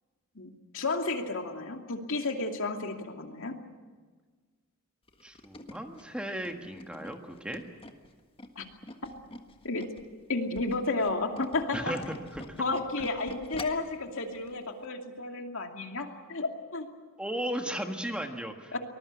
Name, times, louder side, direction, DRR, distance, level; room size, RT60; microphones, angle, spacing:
voice 1, 0.4-3.6 8.6-8.7 9.0-9.1 9.6-9.9 10.3-11.9 12.6-16.9 18.7-18.8, left 3 dB, 65° left, 4 dB, 2.6 m, -32 dB
Tools, 5.1-10.1 10.4-13.9 14.4-14.5 14.8-14.9, left 2 dB, 25° left, 1.6 m, -46 dB
voice 2, 5.2-7.6 11.7-12.6 17.2-18.8, equal, 5° right, 4 dB, 1.6 m, -36 dB
24.5 x 20.5 x 8.3 m, 1.4 s
head